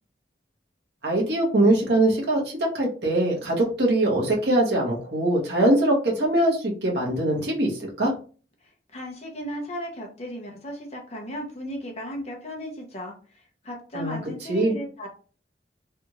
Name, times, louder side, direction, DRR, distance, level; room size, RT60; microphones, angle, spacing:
voice 1, 1.0-8.1 13.9-14.2 14.5-14.7, right 1 dB, 65° right, -2 dB, 1.2 m, -22 dB
voice 2, 8.9-15.1, equal, 40° left, 1 dB, 0.9 m, -36 dB
3.5 x 2.5 x 3.0 m, 0.38 s
head